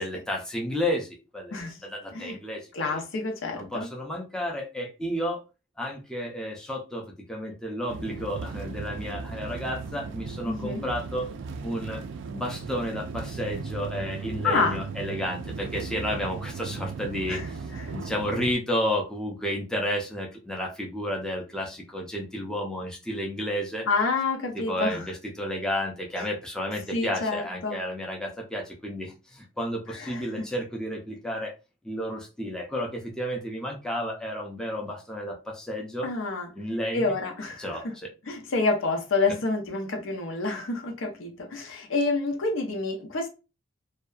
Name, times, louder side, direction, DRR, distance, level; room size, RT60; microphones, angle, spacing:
voice 1, 0.0-3.0 3.6-5.4 5.8-11.3 11.6-12.0 12.3-23.9 24.5-31.5 31.8-36.1 36.5-37.1 37.6-38.1, equal, 5° left, 0.4 m, -32 dB
voice 2, 2.7-3.9 10.4-10.9 14.4-14.8 17.3-17.5 17.7-17.8 23.9-25.1 26.9-27.8 29.9-30.2 36.0-36.5 36.9-37.7 38.3-43.3, left 3 dB, 85° left, 0.6 m, -28 dB
sound 1, 7.9-18.5, right 5 dB, 70° right, 0.3 m, -36 dB
2.6 x 2.2 x 2.3 m
head